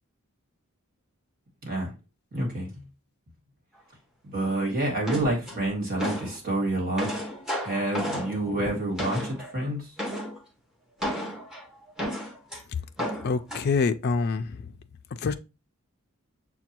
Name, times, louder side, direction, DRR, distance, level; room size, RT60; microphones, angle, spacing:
voice 1, 2.3-2.7 4.2-7.1 7.6-9.9, right 1 dB, 45° right, 1.7 m, -28 dB
sound 1, 5.1-6.4 6.7-9.5 10.0-10.4 11.0-12.6 13.0-13.6, equal, 5° right, 0.9 m, -33 dB
voice 2, 13.2-14.5 15.2-15.3, left 4 dB, 50° left, 0.4 m, -25 dB
6.6 x 2.2 x 2.9 m
head